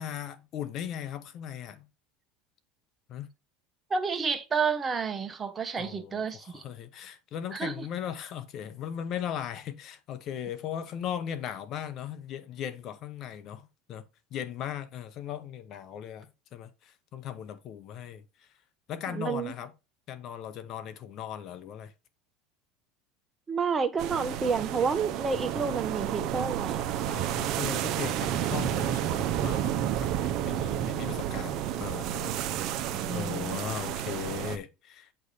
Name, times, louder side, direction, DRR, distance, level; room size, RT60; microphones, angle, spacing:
voice 1, 0.0-1.9 3.1-3.3 5.8-14.0 14.3-18.2 18.9-19.7 20.1-21.9 27.0-30.1 30.4-32.8 33.1-35.1, left 9 dB, 50° left, 0.9 m, -38 dB
voice 2, 3.9-6.6 7.5-7.9 19.1-19.5 23.5-26.9 32.6-33.6, right 5 dB, 25° right, 0.9 m, -30 dB
sound 1, 24.0-34.6, right 11 dB, 55° right, 0.7 m, -31 dB
8.0 x 3.3 x 4.2 m
supercardioid pair, 105°, 0 cm